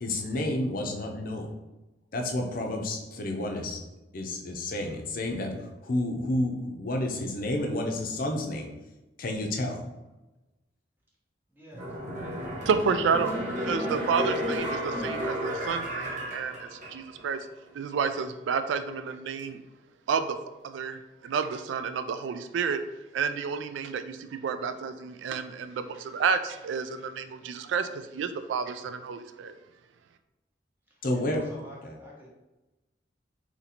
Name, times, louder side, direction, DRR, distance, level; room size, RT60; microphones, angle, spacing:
voice 1, 0.0-1.5 2.1-3.8 4.1-5.5 5.8-8.7 9.2-9.8 31.0-31.4 31.8-32.0, left 1 dB, 50° left, 2 dB, 0.6 m, -30 dB
voice 2, 11.6-12.6 13.2-13.3 13.5-13.8 31.3-32.3, equal, 10° right, -4 dB, 0.9 m, -49 dB
sound 1, 11.7-17.3 17.7-17.8, equal, 45° right, 0.8 m, -33 dB
voice 3, 12.7-13.4 13.7-17.5 17.7-19.6 20.1-20.4 20.6-22.8 23.1-29.6, right 6 dB, 80° right, 10 dB, 0.3 m, -30 dB
4.1 x 2.9 x 2.8 m, 1.0 s
head